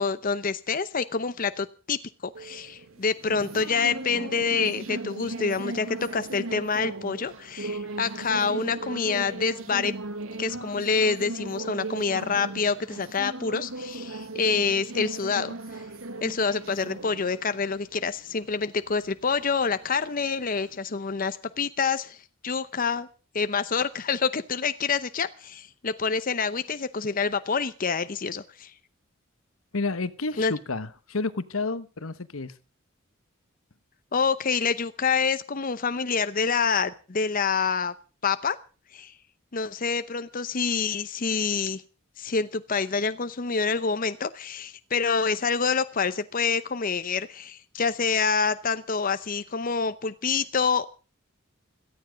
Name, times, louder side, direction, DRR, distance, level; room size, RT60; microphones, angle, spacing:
voice 1, 0.0-9.9 10.4-15.5 16.2-22.2 22.4-23.1 23.3-28.7 30.4-30.5 34.1-37.9 38.2-38.6 38.9-39.1 39.5-41.8 42.2-50.8, left 5 dB, 40° left, 12 dB, 0.8 m, -27 dB
sound 1, 2.3-20.8, right 2 dB, 85° right, 1.7 m, -38 dB
voice 2, 29.7-32.5, left 3 dB, 80° left, 13 dB, 1.2 m, -30 dB
17.5 x 14.0 x 5.2 m, 0.36 s
head